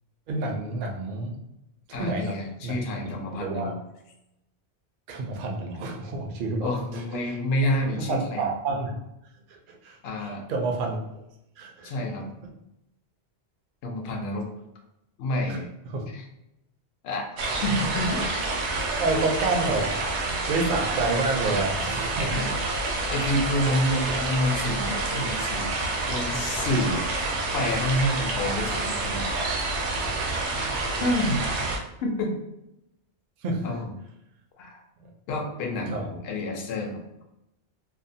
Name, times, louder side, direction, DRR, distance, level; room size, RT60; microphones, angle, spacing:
voice 1, 0.3-1.4 1.9-2.4 2.6-2.7 3.3-3.7 5.1-7.0 8.0-8.9 9.5-11.2 11.6-11.9 15.5-15.6 15.8-16.1 18.9-19.9 20.5-22.3 22.7-22.8 33.4-33.7 35.0-35.1 35.9-36.1, right 3 dB, 60° right, 1 dB, 0.6 m, -29 dB
voice 2, 1.9-3.8 5.7-5.8 6.6-8.5 10.0-10.4 11.8-12.3 13.8-14.5 15.2-15.7 16.1-16.2 17.0-17.3 17.6-18.2 22.3-22.6 23.1-25.7 26.1-27.1 27.5-29.3 31.0-31.4 32.0-32.3 33.6-33.9 34.6-34.8 35.3-37.2, left 1 dB, 65° left, 1 dB, 0.8 m, -28 dB
sound 1, 17.4-31.8, right 2 dB, 85° right, 0.9 m, -28 dB
2.6 x 2.0 x 2.6 m, 0.87 s
omnidirectional pair, 1.2 m